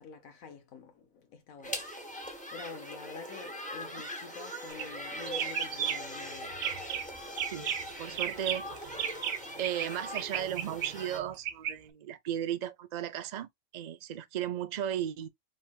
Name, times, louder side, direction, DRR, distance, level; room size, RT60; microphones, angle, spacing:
voice 1, 0.0-1.8 2.1-6.9, left 5 dB, 80° left, 1.3 m, -48 dB
sound 1, 1.6-11.2, equal, 5° left, 1.2 m, -41 dB
sound 2, 4.7-5.0 5.3-6.2 6.5-7.1 7.4-9.9 10.1-11.7, right 8 dB, 60° right, 0.7 m, -34 dB
voice 2, 8.0-9.0 9.6-15.3, right 11 dB, 75° right, 0.4 m, -35 dB
5.1 x 3.6 x 2.4 m
omnidirectional pair, 1.4 m